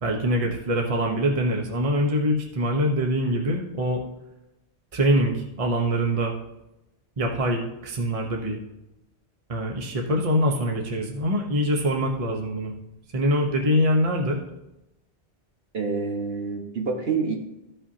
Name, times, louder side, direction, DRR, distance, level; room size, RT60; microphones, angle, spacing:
voice 1, 0.0-4.0 4.9-6.3 7.2-8.6 9.5-12.7 13.1-14.4, equal, 35° right, 1 dB, 1.0 m, -24 dB
voice 2, 15.7-17.4, right 5 dB, 60° right, 1 dB, 1.6 m, -27 dB
14.0 x 5.6 x 2.8 m, 0.90 s
omnidirectional pair, 1.1 m